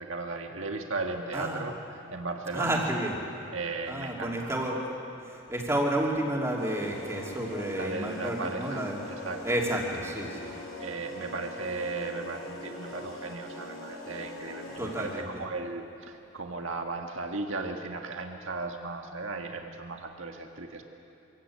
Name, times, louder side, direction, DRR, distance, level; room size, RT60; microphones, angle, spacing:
voice 1, 0.0-1.8 2.1-3.0 3.5-4.5 7.8-9.6 10.8-20.8, right 3 dB, 70° right, 3 dB, 1.7 m, -36 dB
voice 2, 2.5-3.2 3.9-5.0 5.2-9.0 9.4-10.5 14.8-15.4, right 1 dB, 15° right, -2 dB, 3.0 m, -31 dB
sound 1, 6.6-15.3, left 1 dB, 80° left, 8.0 m, -42 dB
26.0 x 17.0 x 8.7 m, 2.9 s
head